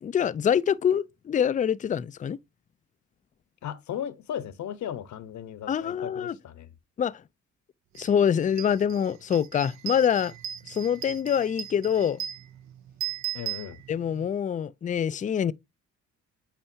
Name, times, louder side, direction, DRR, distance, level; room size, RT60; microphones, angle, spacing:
voice 1, 0.0-2.4 5.7-6.3 7.0-7.2 8.0-10.3 10.7-12.2 13.9-15.5, left 8 dB, 25° left, 0.4 m, -25 dB
voice 2, 3.6-6.7 13.3-13.8, left 10 dB, 70° left, 1.1 m, -36 dB
sound 1, 8.0-8.1 8.4-14.3, right 12 dB, 65° right, 0.6 m, -38 dB
8.9 x 4.3 x 2.7 m
cardioid pair, 90°, 30 cm